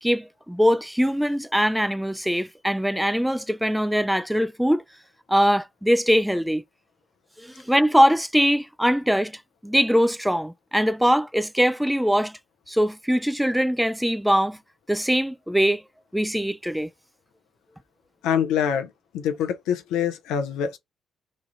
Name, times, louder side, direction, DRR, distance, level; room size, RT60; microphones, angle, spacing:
voice 1, 0.0-4.8 5.3-6.6 7.4-12.4 12.7-14.6 14.9-15.8 16.1-16.9, equal, 5° right, 0.4 m, -22 dB
voice 2, 18.2-20.8, left 8 dB, 75° left, 0.6 m, -25 dB
3.1 x 2.4 x 3.9 m
hypercardioid pair, 45°, 0 cm